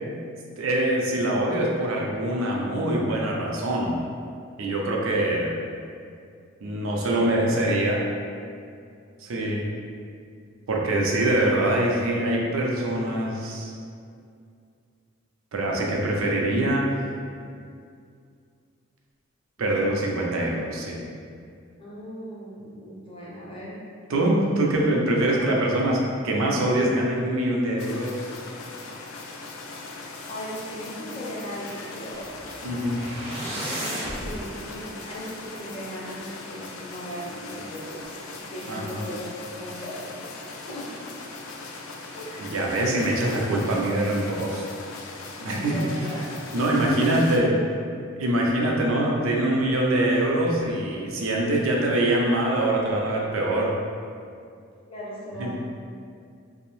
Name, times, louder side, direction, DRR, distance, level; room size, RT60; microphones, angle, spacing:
voice 1, 0.6-4.0 4.6-5.6 6.6-8.1 9.2-9.7 10.7-13.7 15.5-16.9 19.6-21.0 24.1-28.2 32.6-33.0 38.7-39.1 42.4-44.6 45.5-45.8 46.5-47.5 48.2-53.8 55.4-55.5, right 1 dB, 75° right, -2 dB, 0.4 m, -24 dB
voice 2, 19.6-20.1 21.8-23.8 25.2-25.6 30.3-32.3 33.9-38.1 38.5-39.3 39.6-41.0 42.1-42.5 45.4-46.2 46.5-47.6 54.9-55.6, equal, 25° left, -7 dB, 0.6 m, -38 dB
sound 1, 27.8-47.4, left 3 dB, 80° left, 0.3 m, -40 dB
sound 2, 32.2-34.3, equal, 25° right, 0.5 m, -34 dB
2.6 x 2.0 x 3.0 m, 2.3 s
head